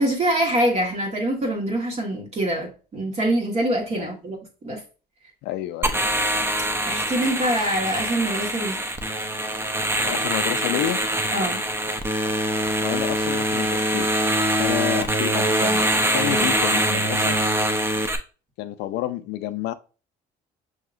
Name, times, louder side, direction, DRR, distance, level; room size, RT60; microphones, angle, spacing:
voice 1, 0.0-4.4 4.6-4.8 6.9-8.8 11.3-11.6 16.3-16.5, right 1 dB, 40° right, 1.4 m, -24 dB
voice 2, 5.4-6.0 10.1-11.0 12.8-14.1 14.6-17.4 18.6-19.7, left 13 dB, 85° left, 0.4 m, -29 dB
sound 1, 5.8-18.2, right 1 dB, 15° right, 0.6 m, -23 dB
6.3 x 2.8 x 2.5 m
cardioid pair, 110°, 17 cm